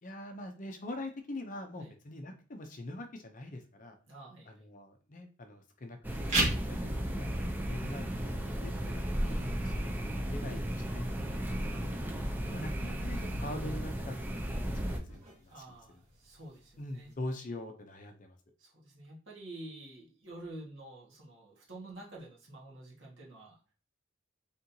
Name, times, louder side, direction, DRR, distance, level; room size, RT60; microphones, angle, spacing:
voice 1, 0.0-4.0 4.5-6.3 6.7-11.9 12.4-15.6 16.8-18.4, left 1 dB, 40° left, 5 dB, 0.6 m, -44 dB
voice 2, 4.1-4.6 11.9-12.2 15.5-17.1 18.6-23.7, right 1 dB, 60° right, -3 dB, 1.6 m, -49 dB
sound 1, 6.0-15.0, equal, 10° right, 0.4 m, -35 dB
sound 2, 6.1-17.1, right 1 dB, 30° right, 1.8 m, -41 dB
4.2 x 3.6 x 2.7 m, 0.38 s
head